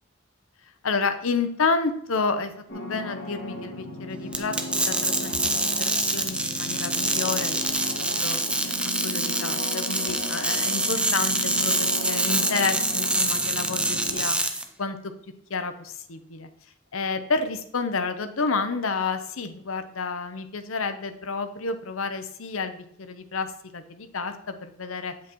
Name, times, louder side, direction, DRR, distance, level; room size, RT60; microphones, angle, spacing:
voice 1, 0.8-4.6 4.9-7.7 8.1-8.7 9.0-15.0 15.5-16.5 16.9-23.5 23.7-25.1, left 4 dB, 75° left, 9 dB, 0.8 m, -30 dB
Surreal Synth, 2.7-14.2, left 1 dB, 50° left, 2.0 m, -36 dB
sound 1, 4.3-14.6, right 2 dB, 5° right, 0.5 m, -26 dB
8.3 x 7.4 x 3.0 m, 0.68 s
head